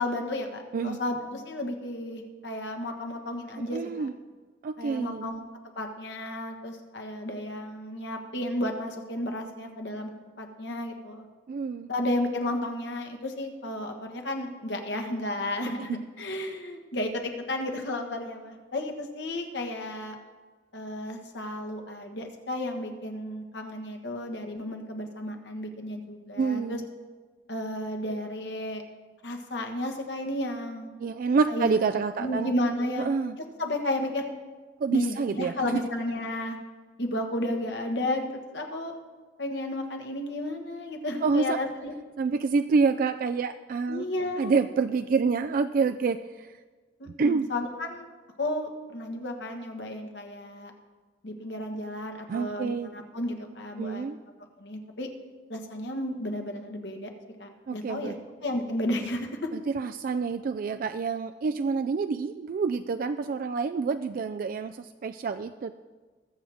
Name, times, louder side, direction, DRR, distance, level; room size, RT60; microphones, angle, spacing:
voice 1, 0.0-4.1 4.8-5.4 5.7-10.1 10.4-11.3 11.9-20.1 20.7-26.8 27.5-28.8 29.2-30.9 31.5-31.8 32.2-33.1 33.6-34.3 34.9-36.6 37.0-38.3 38.5-38.9 39.4-41.9 43.9-44.5 47.0-48.1 48.4-50.7 51.2-54.1 54.6-55.1 55.5-57.1 57.4-58.1 58.4-59.5, left 1 dB, 70° left, 4 dB, 1.5 m, -32 dB
voice 2, 3.7-4.1 4.6-5.3 11.5-11.9 26.4-26.9 31.0-32.5 33.0-33.4 34.8-35.6 41.2-41.6 42.2-44.1 44.4-46.5 47.2-47.5 52.3-52.9 53.8-54.2 57.7-58.2 59.5-65.7, right 4 dB, 50° right, 9 dB, 0.3 m, -27 dB
20.5 x 7.4 x 3.5 m, 1.4 s
head